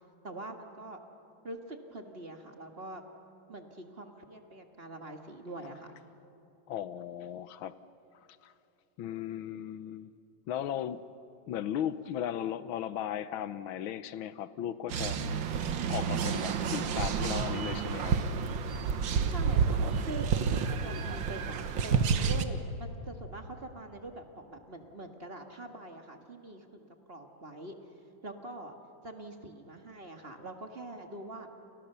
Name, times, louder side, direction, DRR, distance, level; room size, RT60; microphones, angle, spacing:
voice 1, 0.2-1.0 1.4-3.0 3.5-5.9 19.3-27.7 28.2-28.8 29.0-31.5, right 2 dB, 30° right, 1.9 m, -44 dB
voice 2, 6.7-7.7 8.4-8.5 9.0-10.1 10.5-11.0 11.5-15.2 15.9-18.2, left 10 dB, 85° left, 1.6 m, -36 dB
sound 1, 14.9-22.4, right 6 dB, 70° right, 1.8 m, -30 dB
30.0 x 29.0 x 6.9 m
omnidirectional pair, 2.2 m